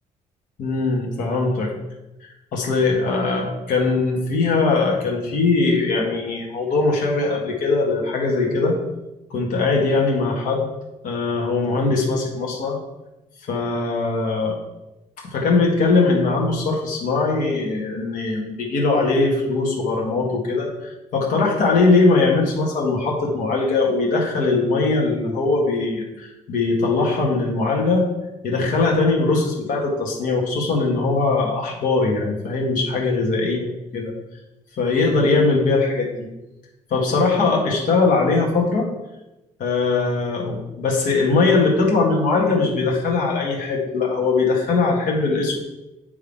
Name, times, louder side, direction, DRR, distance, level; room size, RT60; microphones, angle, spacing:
voice 1, 0.6-1.7 2.5-8.8 9.3-10.7 11.0-12.8 13.5-14.6 15.2-20.7 21.1-28.1 28.4-33.6 33.9-34.1 34.8-36.3 36.9-38.9 39.6-45.6, left 3 dB, 75° left, -1 dB, 1.7 m, -20 dB
9.7 x 3.5 x 3.6 m, 0.98 s
cardioid pair, 165°, 14 cm